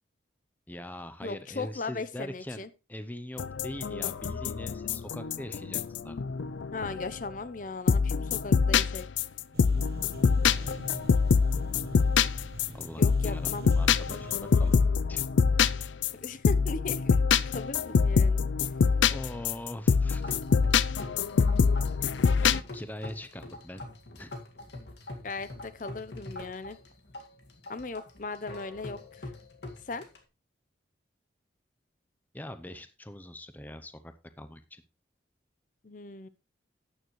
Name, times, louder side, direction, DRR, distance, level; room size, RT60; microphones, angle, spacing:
voice 1, 0.7-6.2 12.7-14.8 15.1-15.2 19.1-20.4 22.0-22.1 22.4-23.8 24.2-24.3 32.3-34.8, left 1 dB, 10° left, 10 dB, 0.6 m, -42 dB
voice 2, 1.2-2.7 6.7-9.1 13.0-13.6 16.2-17.2 17.5-18.5 25.2-26.8 27.7-29.3 29.9-30.1 35.8-36.3, left 3 dB, 45° left, 14 dB, 0.7 m, -38 dB
sound 1, 3.4-7.3 7.9-22.6, left 5 dB, 85° left, 0.4 m, -25 dB
sound 2, 9.5-14.8, right 2 dB, 60° right, 1.0 m, -44 dB
sound 3, 20.1-30.2, left 2 dB, 70° left, 2.0 m, -44 dB
12.5 x 9.3 x 3.1 m, 0.28 s
head